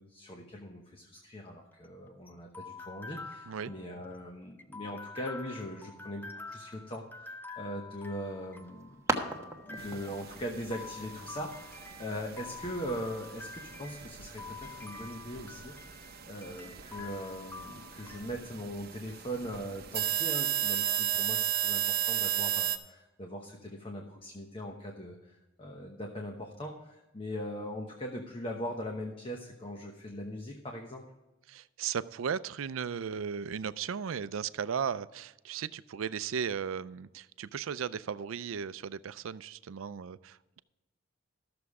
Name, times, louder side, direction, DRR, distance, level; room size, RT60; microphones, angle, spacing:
voice 1, 0.0-9.0 9.4-15.7 16.3-31.0, equal, 30° left, 2 dB, 1.0 m, -40 dB
sound 1, 1.6-18.3, left 4 dB, 10° left, 0.6 m, -47 dB
sound 2, 8.2-13.3, right 2 dB, 15° right, 1.3 m, -40 dB
sound 3, 9.8-22.8, right 9 dB, 50° right, 0.9 m, -35 dB
voice 2, 31.5-40.6, right 7 dB, 85° right, 16 dB, 0.4 m, -36 dB
13.5 x 6.9 x 4.8 m, 1.1 s
head